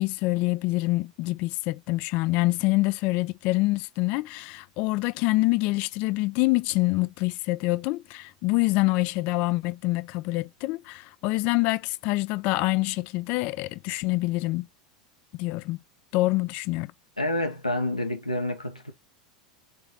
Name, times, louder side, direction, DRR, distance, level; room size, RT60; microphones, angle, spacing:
voice 1, 0.0-14.7 15.3-15.8 16.1-16.9, left 21 dB, 45° left, 0.3 m, -26 dB
voice 2, 17.2-18.9, left 1 dB, 90° left, 1.0 m, -28 dB
4.2 x 4.0 x 5.6 m
figure-of-eight pair, 85°, 3 cm